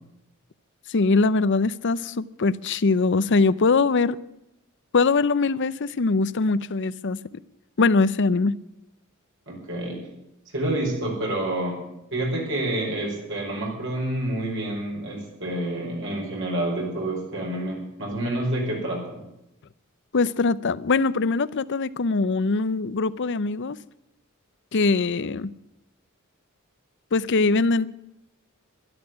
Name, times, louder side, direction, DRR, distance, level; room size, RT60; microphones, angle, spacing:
voice 1, 0.9-4.2 4.9-7.2 7.8-8.6 20.1-23.8 24.7-25.5 27.1-27.9, left 3 dB, 55° left, 0.6 m, -22 dB
voice 2, 9.5-10.0 10.5-11.8 12.1-19.2, right 1 dB, 60° right, 5.4 m, -28 dB
12.5 x 12.0 x 9.7 m
head